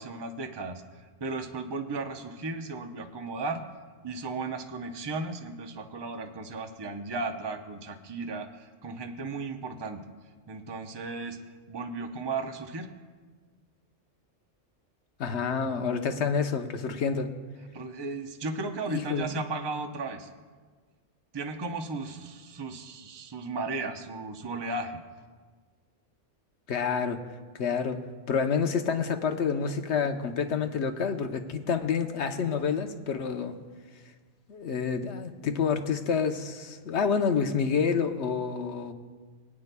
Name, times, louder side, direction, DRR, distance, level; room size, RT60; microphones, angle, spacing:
voice 1, 0.0-3.6 4.0-10.0 10.5-11.4 11.7-12.9 17.7-20.3 21.3-25.0, right 3 dB, 25° right, 5 dB, 0.6 m, -35 dB
voice 2, 15.2-17.3 18.9-19.4 26.7-27.2 27.6-28.0 28.3-33.5 34.5-38.9, left 6 dB, 65° left, 6 dB, 1.0 m, -28 dB
25.0 x 9.4 x 2.2 m, 1.5 s
omnidirectional pair, 1.3 m